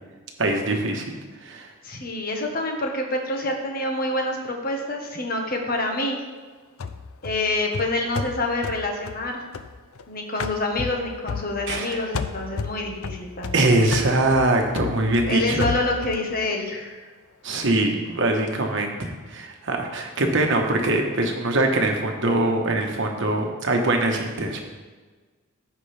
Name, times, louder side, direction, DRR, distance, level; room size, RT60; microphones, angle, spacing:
voice 1, 0.4-1.0 1.4-1.7 11.7-12.0 13.5-15.6 17.4-24.6, right 2 dB, 60° right, 2 dB, 1.2 m, -22 dB
voice 2, 1.8-6.2 7.2-9.4 10.1-13.7 15.3-17.1, left 2 dB, 45° left, 2 dB, 1.3 m, -27 dB
sound 1, 6.8-10.0 10.4-11.9 12.1-16.3, left 5 dB, 80° left, 0.5 m, -32 dB
15.0 x 5.3 x 3.4 m, 1.4 s
head